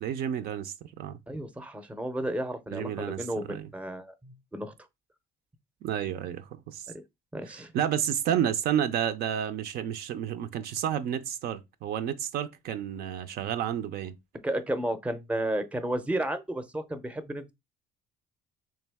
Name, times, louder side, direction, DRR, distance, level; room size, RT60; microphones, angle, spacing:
voice 1, 0.0-1.2 2.7-3.7 5.8-6.9 7.4-14.2, right 9 dB, 70° right, 0.5 m, -31 dB
voice 2, 1.3-4.7 7.3-7.7 14.4-17.5, right 1 dB, 10° right, 0.6 m, -32 dB
3.5 x 3.1 x 3.4 m
cardioid pair, 110°, 17 cm